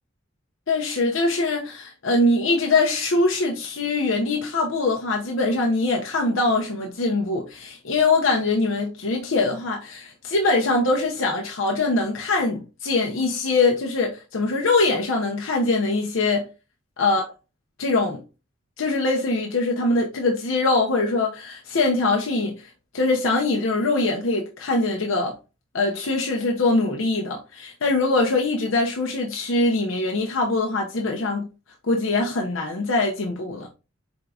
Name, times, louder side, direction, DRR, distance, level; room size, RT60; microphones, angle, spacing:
voice 1, 0.7-16.5 17.0-17.3 17.8-18.2 18.8-22.6 22.9-25.3 25.7-31.5 31.9-33.7, left 2 dB, 90° left, 0.8 m, -23 dB
4.9 x 3.6 x 2.4 m
head